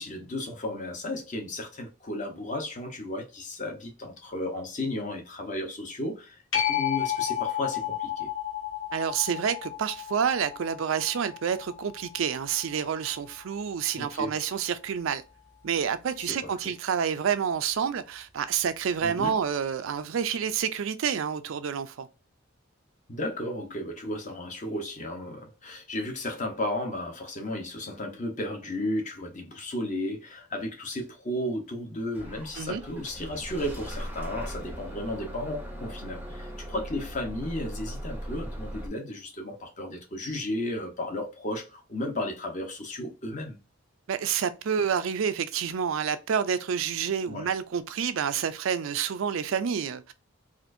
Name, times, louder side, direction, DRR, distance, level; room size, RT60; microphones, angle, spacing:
voice 1, 0.0-8.3 14.0-14.3 19.0-19.3 23.1-43.6 47.3-47.5, left 1 dB, 35° left, 0.9 m, -34 dB
sound 1, 6.5-13.7 19.2-19.3, left 11 dB, 70° left, 1.4 m, -33 dB
voice 2, 8.9-15.2 15.6-22.1 32.6-32.8 44.1-50.1, right 7 dB, 70° right, 0.4 m, -28 dB
Bus / Engine starting, 32.1-38.9, equal, 10° right, 0.6 m, -39 dB
4.2 x 2.5 x 2.5 m
head